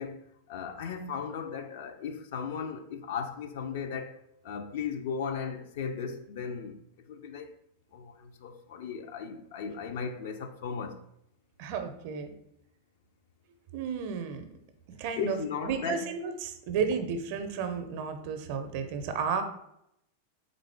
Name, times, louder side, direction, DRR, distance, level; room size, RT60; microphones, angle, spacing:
voice 1, 0.0-6.8 7.1-7.5 7.9-11.0 15.1-16.1, left 6 dB, 55° left, 0.5 m, -36 dB
voice 2, 11.6-12.3 13.7-14.4 15.0-15.4 15.6-19.4, right 6 dB, 50° right, 0.6 m, -32 dB
3.9 x 3.6 x 3.4 m
figure-of-eight pair, 90°, 0 cm